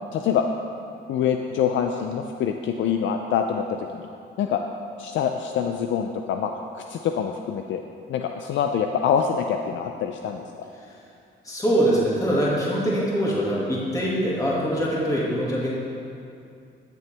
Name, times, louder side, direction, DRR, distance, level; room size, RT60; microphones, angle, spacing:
voice 1, 0.1-0.4 1.1-4.1 4.4-4.6 5.0-7.8 8.1-10.5, left 7 dB, 70° left, 5 dB, 0.5 m, -25 dB
voice 2, 11.4-15.7, equal, 15° left, -6 dB, 2.1 m, -23 dB
14.0 x 6.9 x 3.4 m, 2.5 s
cardioid pair, 90°, 20 cm